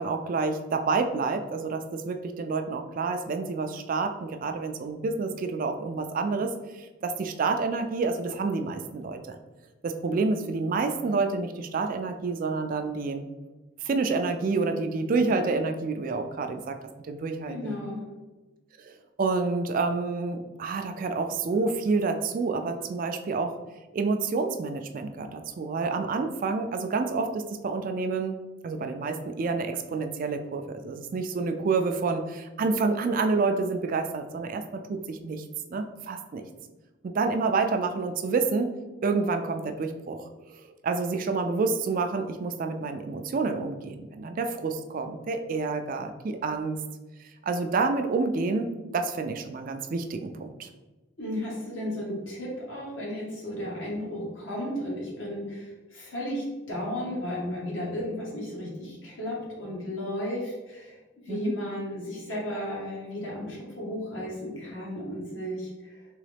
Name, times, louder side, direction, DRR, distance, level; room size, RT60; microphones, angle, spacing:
voice 1, 0.0-9.4 9.8-13.2 13.8-16.8 17.1-17.8 18.8-18.9 19.2-23.5 23.9-35.4 35.7-36.5 37.0-46.8 47.4-48.7 48.9-50.7 61.3-61.5, right 4 dB, 45° right, 6 dB, 0.3 m, -28 dB
voice 2, 17.5-18.1 51.2-66.0, left 1 dB, 70° left, -4 dB, 1.4 m, -34 dB
3.8 x 3.0 x 3.3 m, 1.2 s
head